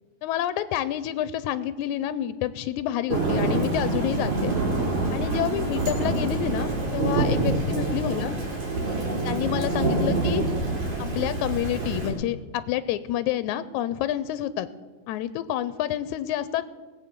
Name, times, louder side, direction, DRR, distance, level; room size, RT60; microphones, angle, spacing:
voice 1, 0.2-4.6 5.1-8.3 9.3-10.4 11.2-14.7 15.1-16.7, left 12 dB, 90° left, 14 dB, 2.0 m, -28 dB
Thunder / Rain, 3.1-12.1, right 2 dB, 75° right, 4.1 m, -26 dB
18.0 x 8.0 x 6.8 m, 1.3 s
omnidirectional pair, 3.3 m